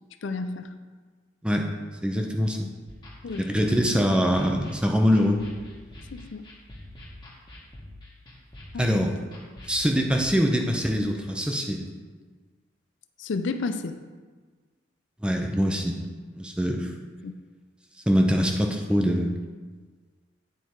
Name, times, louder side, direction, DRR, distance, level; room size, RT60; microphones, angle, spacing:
voice 1, 0.2-0.7 3.2-3.5 6.1-6.5 8.7-9.0 13.2-14.0 17.2-17.3, left 3 dB, 70° left, 9 dB, 0.5 m, -31 dB
voice 2, 2.0-2.7 3.4-5.4 8.8-9.1 9.7-11.9 15.2-16.0 16.4-16.9 18.1-19.4, equal, 5° right, 2 dB, 0.6 m, -23 dB
sound 1, 2.9-10.3, left 1 dB, 25° left, 1.5 m, -46 dB
9.2 x 4.5 x 4.6 m, 1.4 s
head